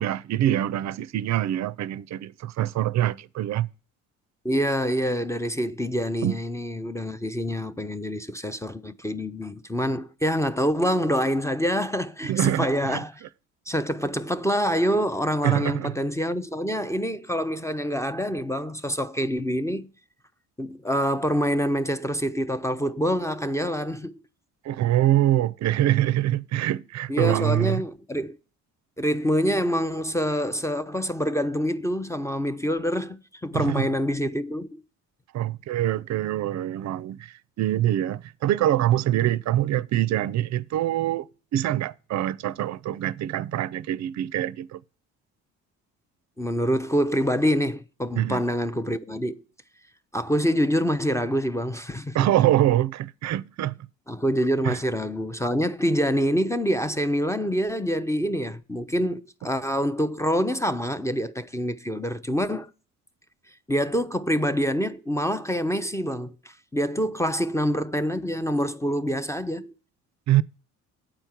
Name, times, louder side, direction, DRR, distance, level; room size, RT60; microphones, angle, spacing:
voice 1, 0.0-3.7 6.2-6.4 12.2-13.0 15.4-15.9 24.6-27.8 33.5-33.9 35.3-44.8 48.2-48.5 52.1-53.9 54.6-54.8 70.3-70.4, right 13 dB, 45° right, 0.5 m, -24 dB
voice 2, 4.4-13.2 13.7-19.9 20.6-24.2 27.1-28.4 29.0-34.8 46.4-49.4 50.1-52.3 54.1-62.7 63.7-69.7, equal, 10° left, 0.5 m, -26 dB
8.7 x 4.4 x 7.2 m
hypercardioid pair, 55°, 39 cm